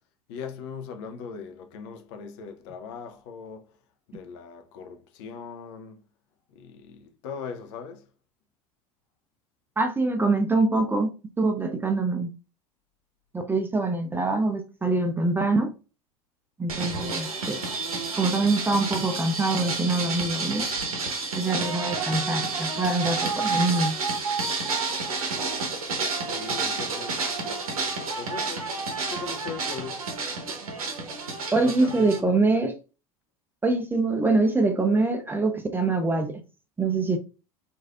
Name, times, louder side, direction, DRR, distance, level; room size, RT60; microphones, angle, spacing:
voice 1, 0.3-3.7 4.1-6.0 6.6-8.0 26.1-28.7 29.1-30.0 31.6-32.5, left 6 dB, 55° left, 0.5 m, -40 dB
voice 2, 9.8-11.1 11.4-12.3 13.3-15.7 16.6-17.6 18.2-20.7 21.3-24.0 31.5-32.7 33.6-36.4 36.8-37.2, right 3 dB, 10° right, 0.5 m, -24 dB
sound 1, 16.7-32.2, right 4 dB, 75° right, 0.7 m, -30 dB
3.1 x 2.5 x 2.2 m
figure-of-eight pair, 75°, 18 cm